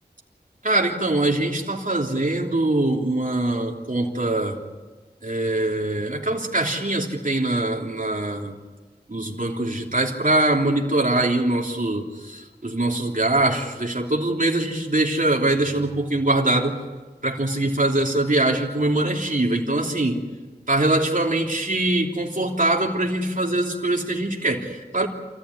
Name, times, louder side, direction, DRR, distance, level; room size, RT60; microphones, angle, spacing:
voice 1, 0.6-4.6 5.2-8.5 9.1-16.8 17.2-20.2 20.7-25.1, right 2 dB, 50° right, -1 dB, 3.2 m, -23 dB
27.5 x 15.0 x 9.7 m, 1.3 s
wide cardioid pair, 45°, 17 cm